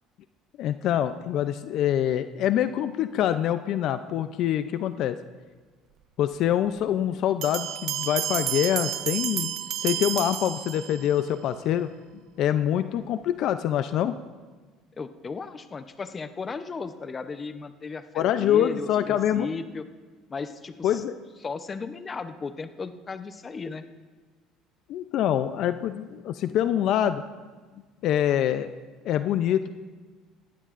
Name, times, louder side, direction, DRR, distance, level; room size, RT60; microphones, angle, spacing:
voice 1, 0.6-5.2 6.2-11.9 12.4-14.1 18.1-19.5 20.8-21.2 24.9-27.2 28.0-28.7 29.0-29.7, left 10 dB, 60° left, 11 dB, 0.5 m, -25 dB
Bell, 7.4-11.2, right 12 dB, 55° right, 0.7 m, -31 dB
voice 2, 15.0-19.9 20.3-21.0 21.4-23.8, left 4 dB, 25° left, 10 dB, 0.7 m, -36 dB
19.0 x 14.5 x 2.5 m, 1.4 s
cardioid pair, 120°, 0 cm